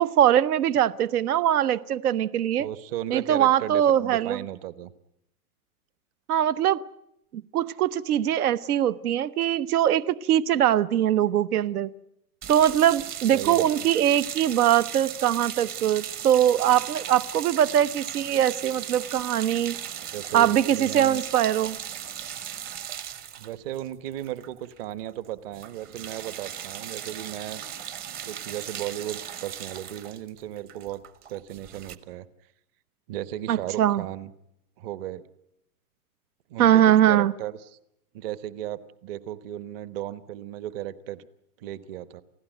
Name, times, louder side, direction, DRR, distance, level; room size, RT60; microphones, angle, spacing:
voice 1, 0.0-2.7 3.1-4.4 6.3-6.8 7.3-11.9 12.5-19.8 20.3-21.8 33.5-34.0 36.6-37.3, right 11 dB, 85° right, 1.0 m, -22 dB
voice 2, 2.6-4.9 13.3-13.7 19.9-21.2 23.4-27.6 28.2-31.0 31.3-32.3 33.1-34.3 34.8-35.2 36.5-37.7 38.1-41.3 41.6-42.2, right 12 dB, 40° right, 1.1 m, -35 dB
sound 1, 12.4-24.8 25.1-25.3 25.5-32.0, right 9 dB, 20° right, 0.8 m, -37 dB
29.5 x 16.0 x 9.1 m
supercardioid pair, 165°, 44 cm